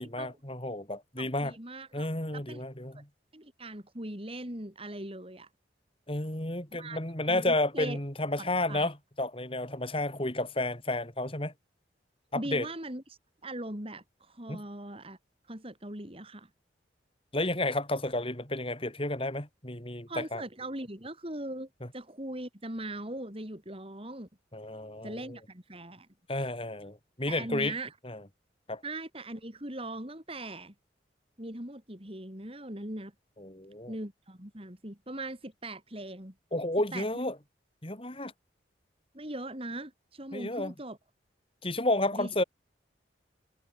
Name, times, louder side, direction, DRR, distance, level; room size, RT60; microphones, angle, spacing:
voice 1, 0.0-1.5 1.9-3.1 6.1-11.5 12.3-12.7 14.5-14.6 17.3-20.4 21.8-21.9 24.5-25.4 26.3-27.7 28.0-28.2 28.7-28.8 33.4-33.9 36.5-37.4 37.8-38.3 40.3-40.7 41.6-42.4, left 1 dB, 30° left, 4.7 m, -31 dB
voice 2, 1.2-2.1 2.3-2.6 3.3-5.5 6.7-7.0 7.3-8.0 8.4-8.9 12.3-15.2 15.5-16.5 20.1-21.7 21.9-24.3 25.0-26.1 27.3-27.9 28.8-30.7 31.4-33.1 33.9-36.3 36.9-37.0 39.1-41.0 42.1-42.3, right 1 dB, 30° right, 4.6 m, -40 dB
head